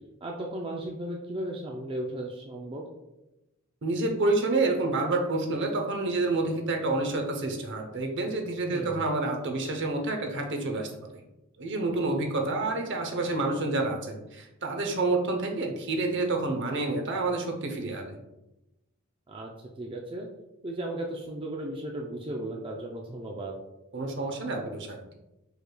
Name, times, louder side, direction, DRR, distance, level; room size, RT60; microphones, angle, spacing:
voice 1, 0.2-2.9 8.7-9.0 19.3-20.3 20.6-23.5, right 1 dB, 25° right, -1 dB, 0.4 m, -35 dB
voice 2, 3.8-11.2 11.6-18.2 23.9-25.0, right 2 dB, 55° right, 3 dB, 0.8 m, -28 dB
4.9 x 4.8 x 2.3 m, 0.96 s
head